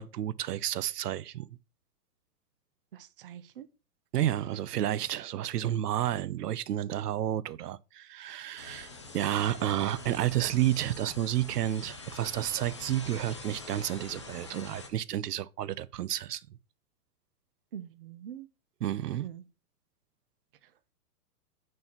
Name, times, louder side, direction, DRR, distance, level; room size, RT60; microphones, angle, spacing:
voice 1, 0.0-1.5 4.1-16.4 18.8-19.3, right 12 dB, 80° right, 0.7 m, -31 dB
voice 2, 2.9-3.7 17.7-18.5 19.2-19.4, right 10 dB, 40° right, 0.6 m, -44 dB
sound 1, 8.6-14.9, left 3 dB, 20° left, 0.4 m, -45 dB
6.2 x 4.6 x 5.7 m
hypercardioid pair, 165°, 46 cm